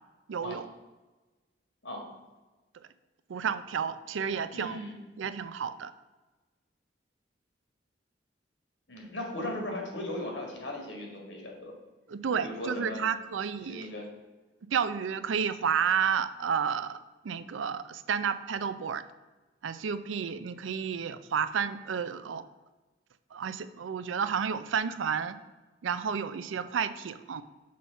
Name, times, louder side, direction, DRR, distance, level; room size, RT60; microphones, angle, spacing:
voice 1, 0.3-0.7 3.3-4.8 5.2-5.9 12.1-13.9 14.7-17.0 17.2-19.0 19.6-22.4 23.3-25.4 25.8-27.4, right 7 dB, 85° right, 12 dB, 0.4 m, -31 dB
voice 2, 4.5-5.0 8.9-11.7 12.4-13.1 13.6-14.1, left 1 dB, 75° left, 0 dB, 1.9 m, -37 dB
6.3 x 4.2 x 5.5 m, 1.2 s
head